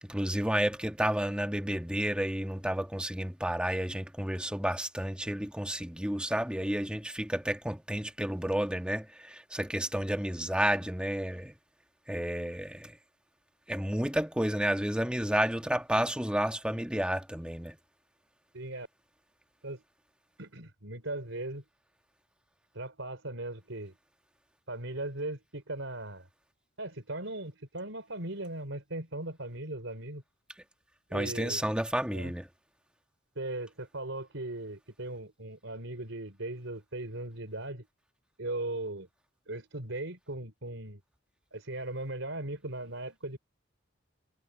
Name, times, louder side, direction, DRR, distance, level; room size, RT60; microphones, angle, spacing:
voice 1, 0.0-11.5 12.1-13.0 13.7-17.8 31.1-32.5, equal, 5° right, 1.9 m, -31 dB
voice 2, 18.5-18.9 19.6-19.8 20.4-21.6 22.7-23.9 24.7-26.3 26.8-30.2 31.1-31.6 32.1-32.3 33.4-37.9 38.4-39.1 39.5-41.0 41.5-43.4, right 2 dB, 70° right, 4.5 m, -38 dB
head